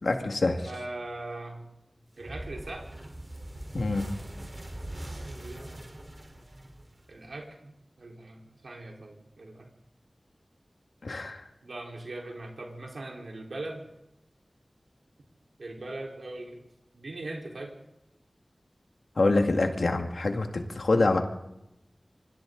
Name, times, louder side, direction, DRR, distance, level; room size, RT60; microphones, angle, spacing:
voice 1, 0.0-0.7 3.7-4.1 11.0-11.4 19.2-21.2, left 2 dB, 85° left, 4 dB, 2.0 m, -25 dB
voice 2, 0.6-1.7 2.2-2.9 5.2-5.9 7.1-9.7 11.6-13.8 15.6-16.6 16.9-17.7, right 2 dB, 85° right, 0 dB, 4.1 m, -40 dB
sound 1, 2.2-7.3, right 1 dB, 45° right, 4.1 m, -41 dB
27.0 x 24.5 x 3.9 m, 0.88 s
wide cardioid pair, 40°, 0 cm